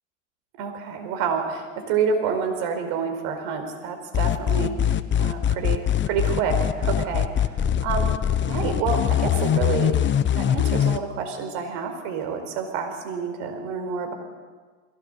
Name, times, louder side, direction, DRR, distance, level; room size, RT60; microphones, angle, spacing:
voice 1, 0.6-8.1 8.5-10.0 10.3-14.1, right 5 dB, 65° right, 5 dB, 4.7 m, -28 dB
sound 1, 4.1-11.0, left 9 dB, 30° left, 1.0 m, -22 dB
21.5 x 18.0 x 8.1 m, 1.5 s
supercardioid pair, 110°, 38 cm